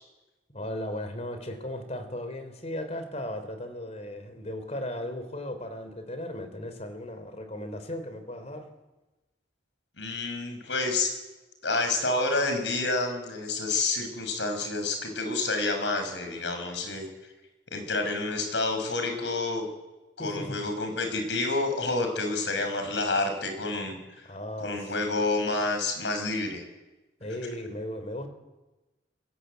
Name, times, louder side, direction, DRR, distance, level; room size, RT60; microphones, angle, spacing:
voice 1, 0.5-8.7 20.2-20.6 24.2-24.9 27.2-28.3, left 1 dB, 40° left, 8 dB, 3.7 m, -36 dB
voice 2, 10.0-11.1 11.6-17.1 17.7-19.7 20.2-24.0 24.6-26.6, left 3 dB, 85° left, 6 dB, 6.1 m, -29 dB
27.5 x 21.5 x 8.3 m, 1.1 s
head